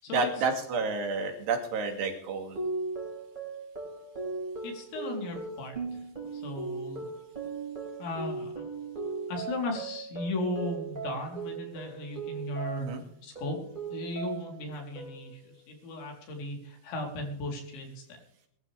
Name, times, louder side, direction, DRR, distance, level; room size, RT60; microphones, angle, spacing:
voice 1, 0.1-2.6 12.8-13.0, right 4 dB, 70° right, 3 dB, 4.5 m, -30 dB
sound 1, 2.6-13.0 13.4-14.6 15.0-15.5, right 4 dB, 10° right, 4.7 m, -38 dB
voice 2, 4.6-6.0 6.3-7.1 8.0-8.5 9.3-12.9 13.2-13.6 13.9-18.2, left 2 dB, 90° left, 1 dB, 6.2 m, -36 dB
22.5 x 12.5 x 3.5 m, 0.70 s
omnidirectional pair, 5.1 m